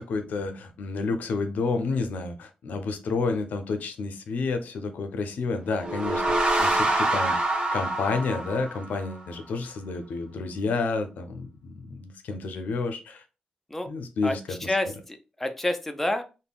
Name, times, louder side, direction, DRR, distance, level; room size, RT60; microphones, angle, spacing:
voice 1, 0.0-7.4 7.7-13.2 13.9-14.7, left 4 dB, 80° left, 7 dB, 0.5 m, -30 dB
sound 1, 5.7-9.2, right 2 dB, 30° right, 0.7 m, -26 dB
voice 2, 14.2-16.2, left 1 dB, 10° left, 6 dB, 0.4 m, -29 dB
3.4 x 2.1 x 2.3 m, 0.31 s
cardioid pair, 85°, 3 cm